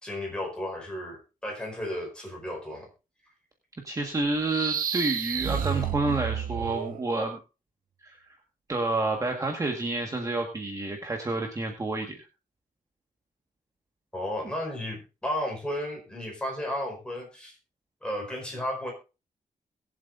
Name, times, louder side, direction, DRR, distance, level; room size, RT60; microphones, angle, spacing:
voice 1, 0.0-2.9 14.1-17.6 18.0-18.9, left 1 dB, 5° left, -1 dB, 4.9 m, -33 dB
voice 2, 3.8-7.4 8.0-8.4 8.7-12.2, right 2 dB, 25° right, 2 dB, 1.6 m, -29 dB
sound 1, 4.2-7.0, right 8 dB, 80° right, 1.0 m, -30 dB
21.5 x 7.7 x 2.6 m, 0.31 s
wide cardioid pair, 145°, 14 cm